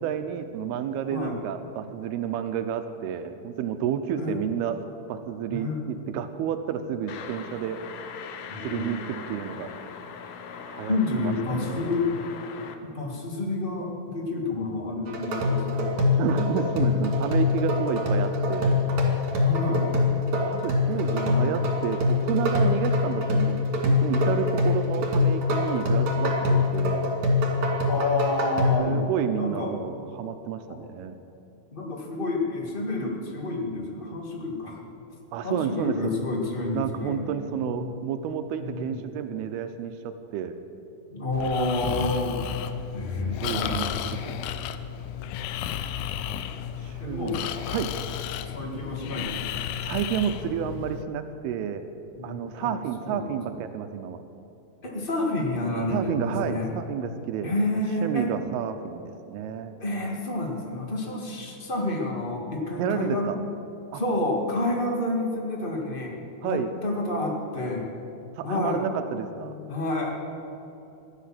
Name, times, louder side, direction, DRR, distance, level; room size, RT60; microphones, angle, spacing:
voice 1, 0.0-4.8 5.1-7.8 8.6-9.7 10.7-11.9 16.2-18.8 20.4-27.1 28.8-31.2 35.3-36.1 36.7-40.6 43.2-44.4 46.8-47.4 47.7-47.9 49.8-51.9 52.2-54.2 55.9-59.8 62.8-63.4 63.9-64.0 66.4-66.7 68.4-69.6, right 8 dB, 85° right, 8 dB, 2.6 m, -30 dB
voice 2, 5.5-5.8 8.5-8.9 10.9-12.1 12.8-15.9 16.8-17.0 19.4-19.9 20.8-21.5 27.9-29.0 29.3-29.7 30.7-30.8 31.7-34.8 35.4-37.3 37.6-37.9 38.6-39.0 41.1-42.4 42.9-44.0 45.2-45.4 47.0-47.4 48.5-49.6 52.1-53.5 54.8-56.7 57.4-58.3 59.8-63.4 63.9-66.1 66.4-67.9 68.4-68.9 69.4-70.1, left 2 dB, 40° left, 0 dB, 0.7 m, -29 dB
sound 1, 7.1-12.7, left 6 dB, 70° left, 2.3 m, -40 dB
sound 2, 15.1-28.7, left 3 dB, 55° right, 3.6 m, -24 dB
Breathing, 41.3-51.0, left 10 dB, 90° left, 2.6 m, -33 dB
16.0 x 11.0 x 7.5 m, 2.8 s
omnidirectional pair, 4.5 m